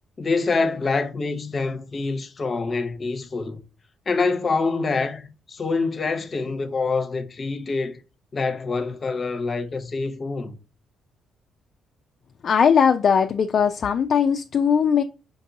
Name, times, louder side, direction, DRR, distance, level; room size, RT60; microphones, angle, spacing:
voice 1, 0.2-3.6 4.1-8.0 8.3-10.6, left 4 dB, 40° left, 0.7 m, -26 dB
voice 2, 12.4-15.0, left 7 dB, 55° left, 0.3 m, -19 dB
5.1 x 2.8 x 2.7 m
cardioid pair, 90°, 0 cm